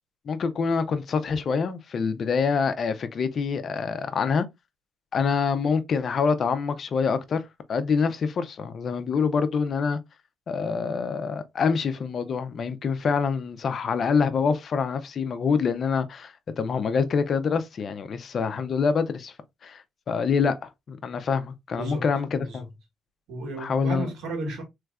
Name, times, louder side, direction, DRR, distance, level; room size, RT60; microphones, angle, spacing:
voice 1, 0.3-4.5 5.1-10.0 10.5-19.3 19.6-22.6 23.6-24.1, left 5 dB, 55° left, 0.6 m, -26 dB
voice 2, 21.7-22.7 23.3-24.6, right 2 dB, 85° right, 1.7 m, -34 dB
3.3 x 3.2 x 2.3 m
cardioid pair, 90°, 0 cm